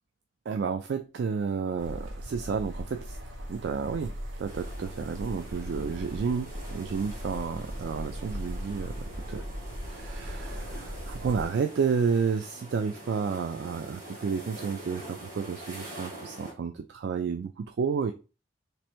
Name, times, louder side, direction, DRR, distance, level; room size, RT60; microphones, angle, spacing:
voice 1, 0.5-3.2 3.5-8.9 9.3-9.4 10.0-18.1, right 6 dB, 65° right, 0.3 m, -31 dB
sound 1, 1.8-11.4, equal, 90° right, 0.8 m, -38 dB
sound 2, 4.5-16.5, right 1 dB, 40° right, 1.8 m, -45 dB
3.2 x 2.5 x 4.3 m
head